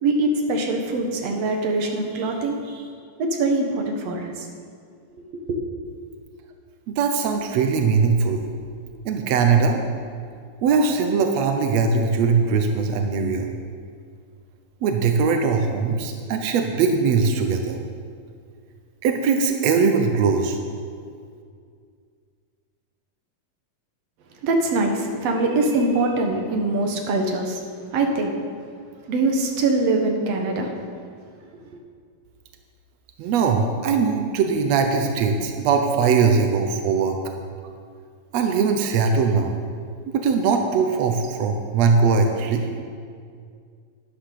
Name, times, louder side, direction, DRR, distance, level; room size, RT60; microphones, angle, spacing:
voice 1, 0.0-2.8 3.2-4.5 5.5-5.6 24.4-27.6 27.9-28.3 29.1-30.7, right 2 dB, 55° right, 2 dB, 2.0 m, -23 dB
voice 2, 6.9-8.4 9.0-9.8 10.6-13.5 14.8-17.8 19.0-20.6 33.2-37.2 38.3-39.6 40.1-42.7, right 5 dB, 85° right, 4 dB, 1.5 m, -20 dB
12.0 x 10.0 x 6.6 m, 2.2 s
omnidirectional pair, 4.3 m